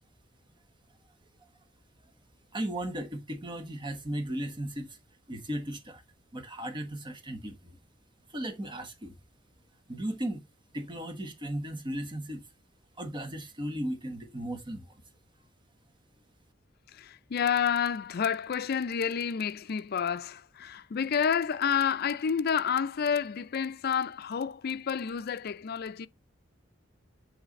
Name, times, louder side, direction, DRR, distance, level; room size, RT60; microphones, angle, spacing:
voice 1, 2.5-5.0 5.3-6.0 6.3-7.8 8.3-9.1 9.9-10.4 10.7-12.4 13.0-15.0, right 1 dB, 25° right, 1.1 m, -36 dB
voice 2, 16.9-26.1, left 7 dB, 55° left, 0.4 m, -29 dB
7.8 x 3.2 x 4.0 m
head